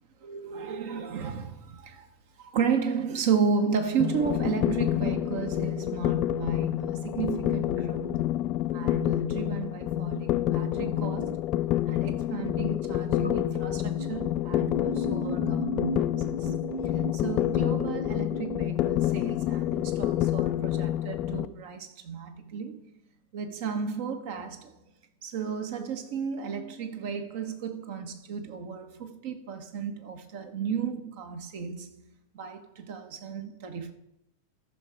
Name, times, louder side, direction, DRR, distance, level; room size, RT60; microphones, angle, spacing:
voice 1, 0.2-2.1 2.4-8.3 8.7-11.4 11.8-16.5 17.1-22.8 23.3-24.7 25.2-33.9, right 6 dB, 50° right, 1.3 m, -33 dB
sound 1, 4.0-21.5, left 14 dB, 35° left, 0.4 m, -28 dB
sound 2, 10.8-11.4 13.1-14.1 14.5-18.7, right 1 dB, 85° left, 1.0 m, -37 dB
14.0 x 5.8 x 4.9 m
figure-of-eight pair, 90°, 0 cm